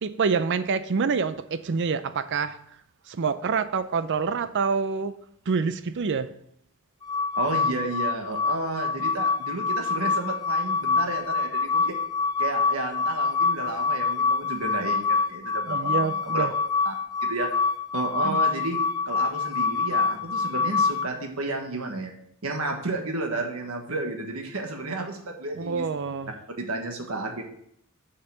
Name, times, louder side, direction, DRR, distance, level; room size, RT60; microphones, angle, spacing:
voice 1, 0.0-2.6 3.1-5.1 5.5-6.3 15.7-16.5 18.2-18.4 25.6-26.3, right 5 dB, 55° right, 13 dB, 0.5 m, -26 dB
sound 1, 7.0-21.1, left 4 dB, 20° left, 0.4 m, -26 dB
voice 2, 7.4-12.0 12.4-16.5 16.8-16.9 17.2-17.5 17.9-18.8 19.1-22.1 22.4-25.8 26.6-27.4, right 2 dB, 75° right, 3 dB, 1.4 m, -32 dB
6.6 x 5.6 x 5.7 m, 0.72 s
head